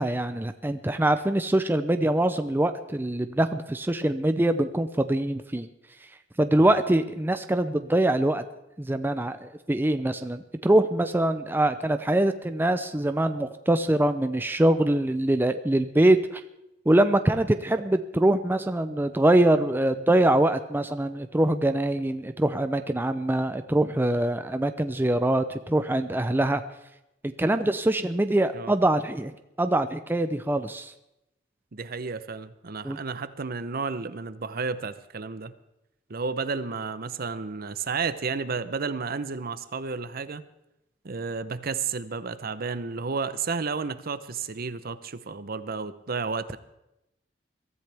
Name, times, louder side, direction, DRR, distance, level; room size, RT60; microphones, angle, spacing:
voice 1, 0.0-5.7 6.4-8.4 8.8-16.4 16.9-26.6 27.2-30.9 32.8-33.0, right 1 dB, 10° right, 9 dB, 0.5 m, -24 dB
voice 2, 31.7-35.5 36.1-40.5 41.0-46.6, right 4 dB, 50° right, 13 dB, 0.7 m, -32 dB
22.5 x 13.5 x 3.4 m, 0.91 s
head